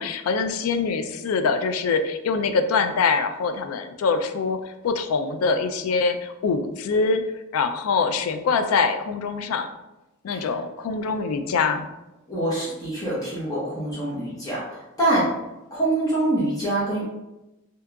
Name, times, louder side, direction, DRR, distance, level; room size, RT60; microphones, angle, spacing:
voice 1, 0.0-4.6 4.8-7.2 7.5-9.7 10.2-11.9, left 4 dB, 90° left, 8 dB, 0.3 m, -24 dB
voice 2, 12.3-15.3 15.7-17.1, right 1 dB, 20° left, -7 dB, 0.8 m, -25 dB
3.5 x 2.8 x 2.3 m, 0.97 s
head